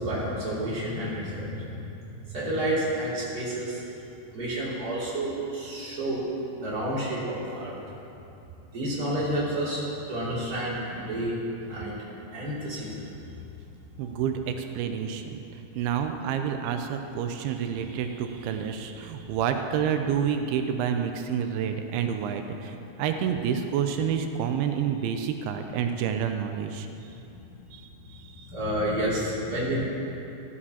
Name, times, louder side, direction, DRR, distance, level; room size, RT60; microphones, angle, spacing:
voice 1, 0.0-1.8 2.1-3.8 4.3-6.2 6.6-7.7 8.7-9.8 10.1-11.3 11.7-11.9 12.3-13.1 14.0-14.1 28.5-29.8, right 1 dB, 25° right, -8 dB, 2.7 m, -30 dB
voice 2, 14.0-15.4 15.8-26.9 27.7-28.5, right 8 dB, 90° right, 6 dB, 2.6 m, -29 dB
14.5 x 11.0 x 2.9 m, 2.8 s
omnidirectional pair, 4.3 m